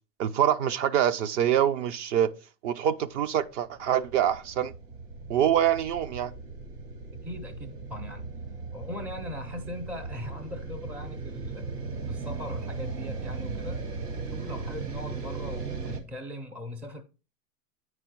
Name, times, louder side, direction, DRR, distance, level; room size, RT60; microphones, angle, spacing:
voice 1, 0.2-2.3 2.6-4.7 5.3-6.3, right 10 dB, 50° right, 0.8 m, -25 dB
sound 1, 3.5-16.0, right 4 dB, 80° right, 2.3 m, -37 dB
voice 2, 7.2-8.3 8.7-11.7 12.1-13.9 14.2-17.0, left 1 dB, 5° right, 0.4 m, -40 dB
9.1 x 4.9 x 4.6 m
hypercardioid pair, 120°, 47 cm